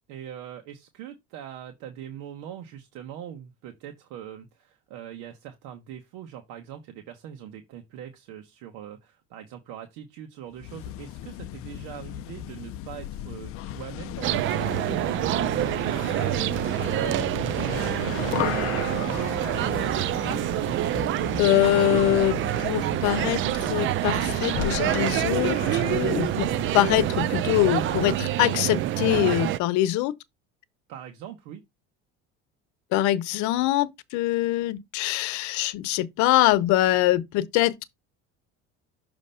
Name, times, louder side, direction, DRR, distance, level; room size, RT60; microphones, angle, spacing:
voice 1, 0.1-18.7 30.9-31.6, right 10 dB, 75° right, 1.2 m, -42 dB
sound 1, 10.5-28.3, left 13 dB, 50° left, 0.5 m, -36 dB
sound 2, 14.2-29.6, right 14 dB, 40° right, 0.4 m, -26 dB
voice 2, 21.4-26.5 26.7-30.1 32.9-37.8, left 14 dB, 70° left, 0.8 m, -23 dB
6.4 x 2.9 x 5.6 m
cardioid pair, 125°, 30 cm